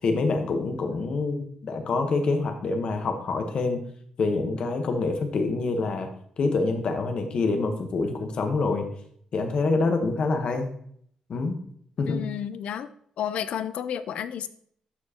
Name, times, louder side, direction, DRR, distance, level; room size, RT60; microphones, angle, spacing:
voice 1, 0.0-3.8 4.2-6.1 6.4-8.9 9.3-10.7 11.3-11.6 12.0-12.2, left 3 dB, 50° left, 6 dB, 1.1 m, -26 dB
voice 2, 12.1-14.5, left 9 dB, 75° left, 13 dB, 0.4 m, -32 dB
11.5 x 4.6 x 2.9 m, 0.65 s
cardioid pair, 125°, 2 cm